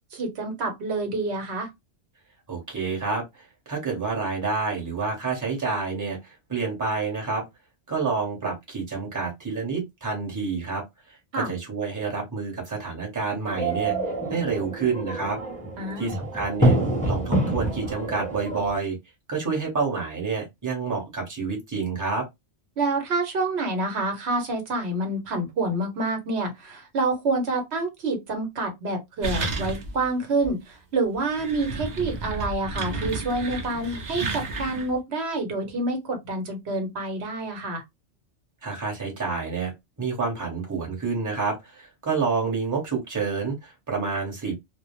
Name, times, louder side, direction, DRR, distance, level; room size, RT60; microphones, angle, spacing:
voice 1, 0.1-1.7 11.3-11.5 15.8-16.2 22.8-37.8, right 2 dB, 70° right, 1.1 m, -27 dB
voice 2, 2.5-7.4 7.9-10.8 11.1-13.9 14.3-15.4 16.0-16.8 17.0-19.0 19.3-22.2 38.6-39.7 40.0-44.5, right 4 dB, 15° right, 1.0 m, -28 dB
sound 1, 13.5-18.7, right 1 dB, 10° left, 0.5 m, -26 dB
sound 2, 29.2-30.1 30.4-30.5 31.1-34.9, right 2 dB, 45° right, 0.7 m, -32 dB
2.3 x 2.1 x 3.0 m
omnidirectional pair, 1.2 m